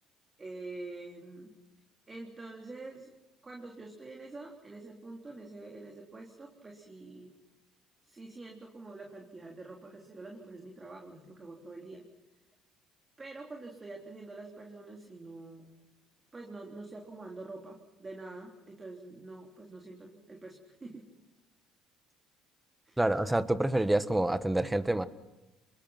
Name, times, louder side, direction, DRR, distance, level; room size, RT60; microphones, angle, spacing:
voice 1, 0.4-1.5 2.1-3.1 3.4-7.3 8.0-12.1 13.2-15.8 16.3-21.1 22.9-23.0, right 2 dB, 25° right, 1 dB, 3.7 m, -46 dB
voice 2, 23.0-25.1, right 1 dB, 10° right, 13 dB, 1.4 m, -27 dB
28.0 x 21.5 x 6.0 m, 1.0 s
supercardioid pair, 80°, 0 cm